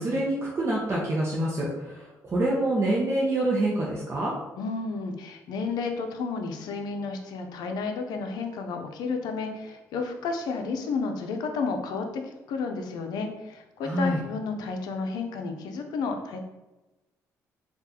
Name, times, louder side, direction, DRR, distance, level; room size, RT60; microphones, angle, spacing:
voice 1, 0.0-4.3 13.8-14.2, right 1 dB, 40° right, -4 dB, 0.7 m, -26 dB
voice 2, 4.6-16.4, left 4 dB, 80° left, 5 dB, 0.5 m, -32 dB
3.6 x 2.4 x 2.8 m, 1.0 s
cardioid pair, 80°, 7 cm